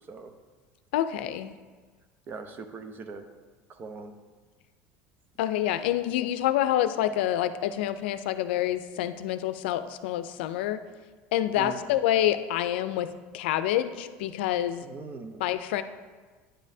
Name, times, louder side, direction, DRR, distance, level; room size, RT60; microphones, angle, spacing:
voice 1, 0.9-1.5 5.4-10.8 11.3-13.1 13.3-14.9 15.4-15.8, left 12 dB, 90° left, 11 dB, 0.4 m, -27 dB
voice 2, 2.3-3.3 3.7-4.2 11.5-11.8 14.8-15.4, right 4 dB, 35° right, 8 dB, 0.7 m, -40 dB
9.9 x 7.3 x 2.7 m, 1.4 s
supercardioid pair, 120°, 6 cm